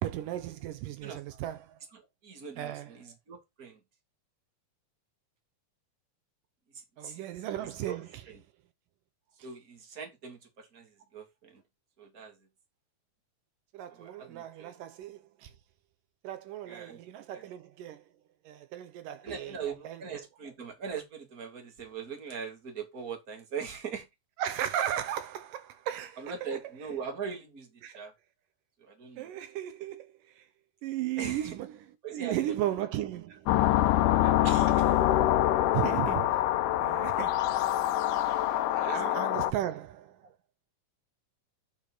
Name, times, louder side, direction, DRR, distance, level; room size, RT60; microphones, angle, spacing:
voice 1, 0.0-1.8 2.6-3.0 7.0-8.2 13.7-15.5 16.2-18.1 18.4-19.6 19.8-20.0 24.4-26.6 27.8-28.0 29.2-30.5 30.8-34.0 34.4-35.0 35.7-36.5 36.8-37.6 38.1-40.3, right 12 dB, 80° right, 2.5 m, -36 dB
voice 2, 1.0-1.4 1.9-3.8 6.7-7.2 7.9-8.0 8.3-8.4 9.4-11.6 12.0-12.4 13.9-14.7 16.7-17.0 17.3-17.5 19.2-24.1 26.2-28.1 28.8-29.3 31.2-31.5 32.0-32.5 34.2-34.4 38.7-39.2 40.2-40.3, right 6 dB, 30° right, 2.6 m, -41 dB
sound 1, 33.5-39.5, left 13 dB, 75° left, 2.2 m, -25 dB
9.5 x 5.0 x 4.1 m
omnidirectional pair, 3.9 m